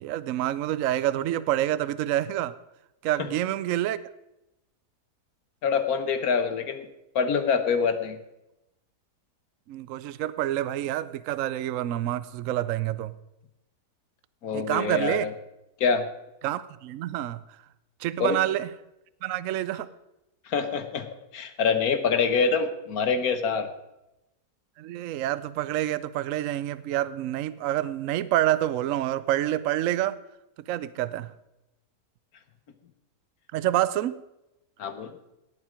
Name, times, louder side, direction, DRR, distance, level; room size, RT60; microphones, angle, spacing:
voice 1, 0.0-2.5 3.0-4.0 9.7-13.1 14.5-15.3 16.4-17.4 18.0-18.7 19.2-19.9 24.8-30.2 30.7-31.3 33.5-34.2, right 13 dB, 70° right, 15 dB, 0.8 m, -27 dB
voice 2, 5.6-6.9 7.1-8.2 14.4-15.3 15.8-16.1 18.2-18.4 20.5-21.1 21.3-23.7 34.8-35.1, left 5 dB, 65° left, 9 dB, 1.5 m, -25 dB
18.0 x 7.3 x 5.1 m, 0.91 s
omnidirectional pair, 1.7 m